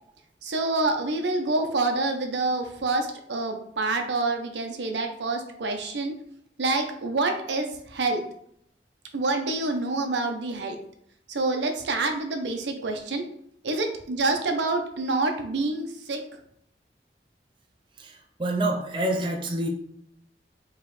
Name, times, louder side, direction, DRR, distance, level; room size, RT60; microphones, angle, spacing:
voice 1, 0.4-6.1 6.6-8.2 9.1-10.8 11.3-13.2 13.6-16.2, right 2 dB, 85° right, 5 dB, 0.6 m, -27 dB
voice 2, 18.0-19.7, right 1 dB, 30° right, 1 dB, 0.5 m, -28 dB
4.8 x 3.0 x 3.1 m, 0.69 s
head